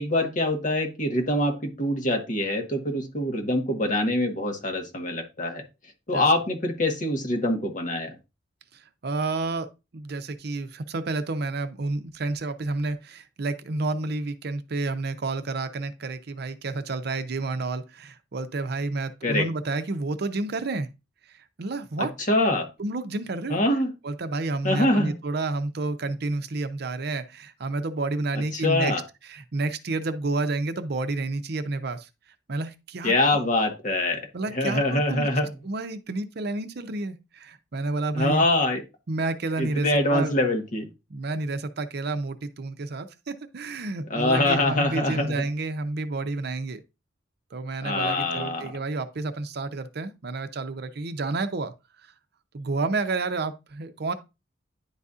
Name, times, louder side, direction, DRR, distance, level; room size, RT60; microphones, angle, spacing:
voice 1, 0.0-5.6 6.1-8.2 19.2-19.5 22.0-22.7 23.5-23.9 24.6-25.2 28.5-29.0 33.0-35.5 38.1-38.8 39.6-40.9 44.1-45.4 47.8-48.7, left 1 dB, 45° left, 1.2 m, -24 dB
voice 2, 8.7-9.7 9.9-20.9 21.6-22.1 22.8-23.6 24.0-28.9 29.3-32.1 32.5-33.5 34.3-35.3 35.6-38.4 39.1-40.3 41.1-46.8 47.5-51.7 52.5-54.1, right 3 dB, 60° right, 0.6 m, -30 dB
10.5 x 4.1 x 2.4 m
head